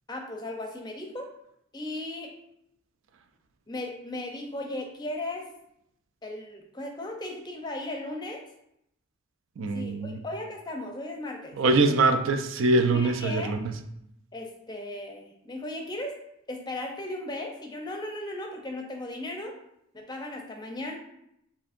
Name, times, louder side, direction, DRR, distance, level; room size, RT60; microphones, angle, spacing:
voice 1, 0.1-1.3 1.7-2.3 3.7-5.4 6.2-8.4 9.7-11.6 12.9-13.5 14.3-16.1 16.5-19.5 19.9-21.0, left 1 dB, 20° left, 2 dB, 0.5 m, -36 dB
voice 2, 9.6-10.2 11.6-13.7, right 3 dB, 75° right, 8 dB, 0.4 m, -23 dB
6.8 x 2.7 x 2.5 m, 0.77 s
head